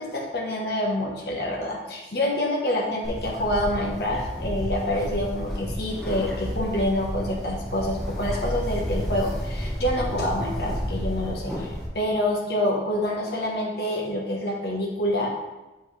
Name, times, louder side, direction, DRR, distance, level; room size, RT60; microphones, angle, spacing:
voice 1, 0.0-15.3, left 1 dB, 60° left, -2 dB, 1.1 m, -27 dB
Bird, 3.0-11.9, equal, ahead, 1.2 m, -31 dB
7.7 x 5.6 x 3.3 m, 1.1 s
head